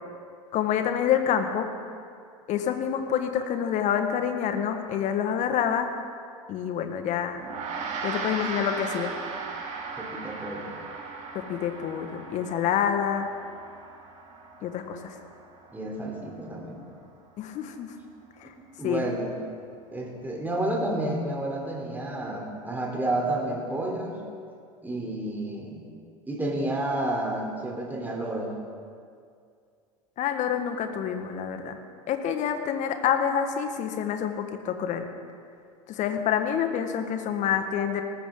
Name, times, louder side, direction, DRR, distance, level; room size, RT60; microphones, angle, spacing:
voice 1, 0.5-1.7 2.5-5.9 6.5-7.4 8.0-9.1 11.3-13.3 14.6-15.1 17.4-17.9 18.4-18.5 18.8-19.1 30.2-31.8 32.1-35.1 35.9-38.0, left 8 dB, 45° left, 7 dB, 1.6 m, -27 dB
Gong, 7.4-17.0, right 4 dB, 40° right, 2.5 m, -38 dB
voice 2, 10.0-10.7 15.7-16.8 18.8-19.3 19.9-24.2 24.8-25.9 26.3-28.6, right 1 dB, 10° right, -1 dB, 3.5 m, -30 dB
19.0 x 14.0 x 3.8 m, 2.3 s
figure-of-eight pair, 80°, 18 cm